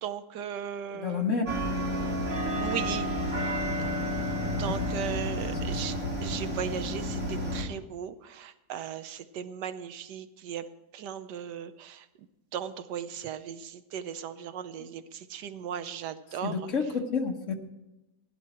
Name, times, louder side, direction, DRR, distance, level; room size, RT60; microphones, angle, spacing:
voice 1, 0.0-1.2 2.6-3.1 4.6-5.9 6.2-10.6 10.9-12.0 12.5-15.0 15.3-16.5, right 9 dB, 80° right, 12 dB, 1.3 m, -37 dB
voice 2, 0.9-1.5 4.5-4.9 5.4-5.8 14.8-14.9 16.4-17.6, left 5 dB, 50° left, 4 dB, 1.4 m, -31 dB
sound 1, 1.5-7.6, equal, 45° right, 2.3 m, -31 dB
15.5 x 11.0 x 4.3 m, 0.96 s
omnidirectional pair, 1.8 m